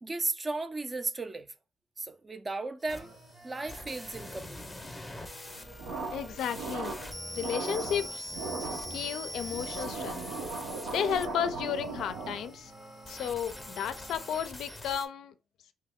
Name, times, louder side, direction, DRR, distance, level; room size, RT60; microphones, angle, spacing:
voice 1, 0.0-1.5 2.0-3.1 3.4-4.7, right 3 dB, 25° right, 0.4 m, -35 dB
sound 1, 2.8-15.1, left 1 dB, 10° left, 0.7 m, -44 dB
sound 2, 2.9-14.7, right 1 dB, 70° right, 1.1 m, -52 dB
sound 3, 5.8-12.6, right 4 dB, 85° right, 0.8 m, -38 dB
voice 2, 6.1-6.9 7.3-8.3 8.9-10.2 10.9-12.7 13.1-15.3, left 8 dB, 75° left, 0.4 m, -33 dB
3.2 x 2.3 x 3.5 m
cardioid pair, 90°, 0 cm